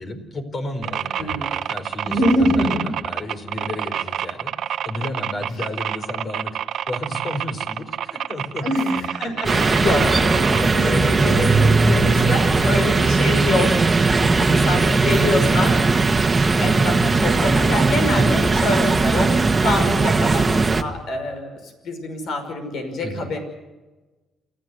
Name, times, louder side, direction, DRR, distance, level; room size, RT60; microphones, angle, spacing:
voice 1, 0.0-4.5 4.8-6.6 6.9-8.7 10.0-11.3 14.1-14.9 15.5-15.8 18.1-18.5 23.0-23.3, left 1 dB, 45° left, 7 dB, 4.6 m, -32 dB
sound 1, 0.8-10.7, right 10 dB, 70° right, 1.1 m, -28 dB
voice 2, 2.1-2.9 8.6-16.1 16.6-19.4 19.6-23.4, left 1 dB, 70° left, 6 dB, 5.7 m, -25 dB
sound 2, 9.4-20.8, right 3 dB, 25° right, 1.6 m, -18 dB
29.5 x 14.5 x 8.1 m, 1.2 s
cardioid pair, 90°, 0 cm